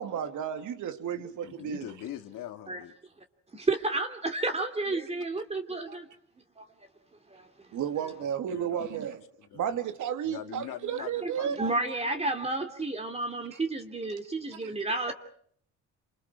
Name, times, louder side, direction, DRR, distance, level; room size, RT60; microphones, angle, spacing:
voice 1, 0.0-1.9 7.7-9.2 9.5-11.6 13.5-13.6 14.6-14.7, right 9 dB, 65° right, 2.8 m, -33 dB
voice 2, 1.1-2.9 8.5-9.0 9.4-9.7 10.2-11.8 15.1-15.2, left 12 dB, 80° left, 2.4 m, -43 dB
voice 3, 3.5-6.1 6.6-6.7 7.3-7.7 11.2-15.1, right 2 dB, 20° right, 2.9 m, -31 dB
30.0 x 27.0 x 4.6 m
cardioid pair, 125°, 32 cm